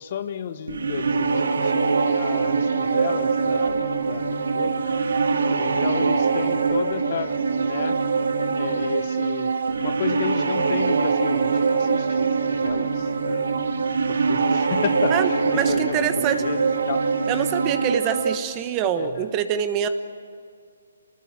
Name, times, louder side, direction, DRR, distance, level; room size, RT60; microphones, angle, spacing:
voice 1, 0.0-3.8 4.1-5.0 5.6-8.0 8.4-13.6 14.1-16.1 16.4-17.0 19.0-19.2, left 9 dB, 40° left, 11 dB, 1.2 m, -33 dB
sound 1, 0.7-18.4, right 4 dB, 70° right, 1.9 m, -23 dB
voice 2, 15.1-16.4 17.3-19.9, right 9 dB, 20° right, 9 dB, 1.3 m, -25 dB
26.5 x 20.0 x 8.7 m, 2.2 s
hypercardioid pair, 160°, 0 cm